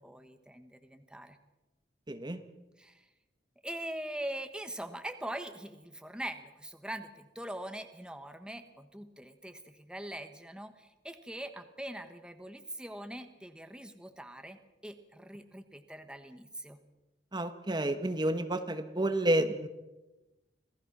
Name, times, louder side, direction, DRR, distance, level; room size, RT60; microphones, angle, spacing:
voice 1, 0.0-1.4 2.8-3.1 3.6-16.8, right 1 dB, 5° right, 7 dB, 1.2 m, -42 dB
voice 2, 2.1-2.4 17.3-19.7, right 1 dB, 25° right, 9 dB, 1.1 m, -30 dB
26.5 x 17.0 x 6.1 m, 1.0 s
head